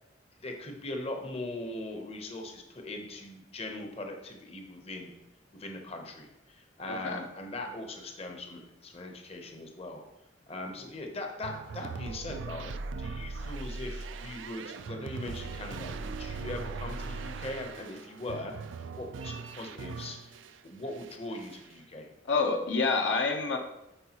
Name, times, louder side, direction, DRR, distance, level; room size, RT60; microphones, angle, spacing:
voice 1, 0.4-5.1 5.5-10.0 10.5-20.3 20.6-22.1, left 2 dB, 35° left, 3 dB, 0.8 m, -40 dB
voice 2, 6.9-7.2 22.3-23.6, left 4 dB, 70° left, 4 dB, 0.7 m, -27 dB
sound 1, 11.4-20.6 20.9-21.7, right 4 dB, 85° right, 0.4 m, -40 dB
9.8 x 4.6 x 2.9 m, 0.90 s
head